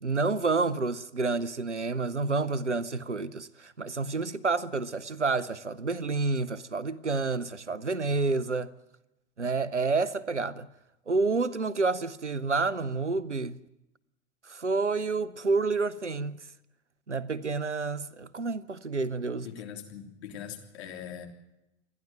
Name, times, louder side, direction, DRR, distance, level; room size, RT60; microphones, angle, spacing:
voice 1, 0.0-8.7 9.4-10.7 11.1-13.6 14.5-16.4 17.1-19.5, right 3 dB, 90° right, 0.8 m, -29 dB
voice 2, 19.4-21.3, left 9 dB, 65° left, 3.4 m, -41 dB
28.0 x 11.0 x 9.1 m
figure-of-eight pair, 80°, 34 cm